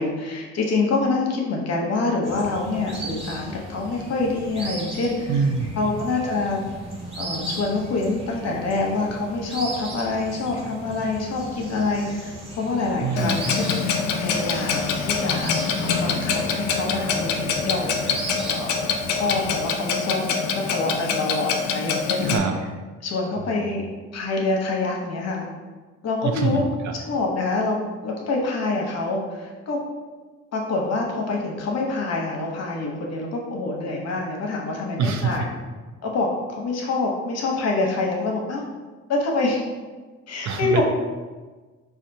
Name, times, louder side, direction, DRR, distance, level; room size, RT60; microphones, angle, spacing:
voice 1, 0.0-5.4 5.8-6.6 7.2-13.4 14.2-18.7 19.1-22.2 23.0-23.8 24.1-25.5 26.0-26.6 26.9-29.8 30.5-35.4 36.0-38.6 39.1-39.6 40.3-40.8, left 3 dB, 55° left, 0 dB, 0.8 m, -26 dB
sound 1, 2.2-19.7, right 1 dB, 20° right, 1.1 m, -37 dB
voice 2, 5.3-6.0 13.0-13.4 22.2-22.5 23.6-23.7 26.2-26.9 35.0-35.4 40.4-40.8, right 5 dB, 70° right, 4 dB, 0.5 m, -25 dB
Clock, 13.2-22.4, left 5 dB, 80° left, 0.4 m, -25 dB
4.3 x 2.4 x 2.6 m, 1.3 s
cardioid pair, 90°, 30 cm